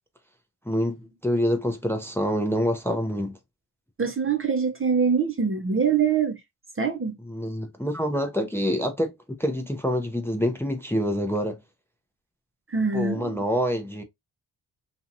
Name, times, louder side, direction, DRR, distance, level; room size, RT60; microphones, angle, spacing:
voice 1, 0.7-3.4 7.3-9.1 9.4-11.6 12.9-14.0, equal, 5° left, 0.6 m, -26 dB
voice 2, 4.0-6.4 6.8-7.2 12.7-13.4, right 6 dB, 30° right, 0.7 m, -24 dB
2.8 x 2.4 x 2.7 m
cardioid pair, 50°, 43 cm